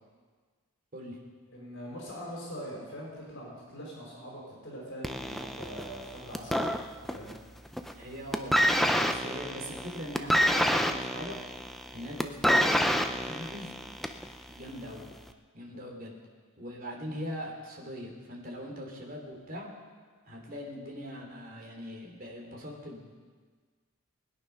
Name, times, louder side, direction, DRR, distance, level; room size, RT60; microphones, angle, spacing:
voice 1, 1.5-7.4 15.7-15.8, equal, 60° left, -4 dB, 5.1 m, -43 dB
sound 1, 5.0-7.4 7.7-8.0 8.3-14.3 15.1-15.2, equal, ahead, 0.5 m, -27 dB
voice 2, 7.9-11.4 11.9-13.7 14.4-15.1 15.5-16.1 16.6-19.7 20.3-23.1, equal, 45° right, -1 dB, 3.2 m, -41 dB
21.0 x 9.5 x 5.7 m, 1.5 s
head